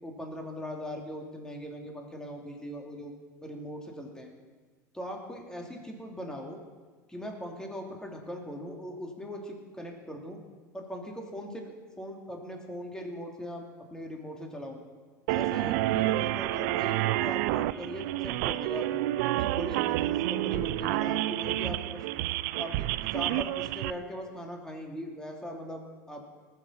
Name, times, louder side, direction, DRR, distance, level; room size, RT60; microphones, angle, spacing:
voice 1, 0.0-3.1 3.4-4.3 4.9-6.6 7.1-10.4 10.7-13.6 13.9-14.8 15.3-18.9 19.3-22.0 22.5-26.2, equal, 5° left, 1 dB, 2.7 m, -40 dB
sound 1, 15.3-23.9, right 16 dB, 65° right, 0.4 m, -29 dB
19.0 x 7.7 x 5.8 m, 1.4 s
hypercardioid pair, 80°, 10 cm